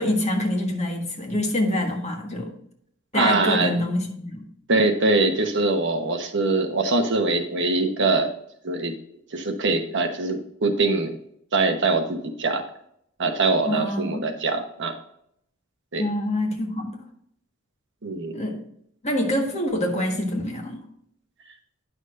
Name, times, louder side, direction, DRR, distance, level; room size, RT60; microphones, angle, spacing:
voice 1, 0.0-2.5 3.1-4.5 13.7-14.3 16.0-16.9 18.3-18.6 19.0-20.8, left 1 dB, 30° left, 1 dB, 1.5 m, -26 dB
voice 2, 3.1-3.7 4.7-8.3 8.6-9.0 9.3-11.2 11.5-12.6 13.2-15.0 15.9-16.0 18.0-18.4, right 3 dB, 60° right, 5 dB, 1.1 m, -23 dB
9.9 x 6.3 x 2.6 m, 0.70 s
head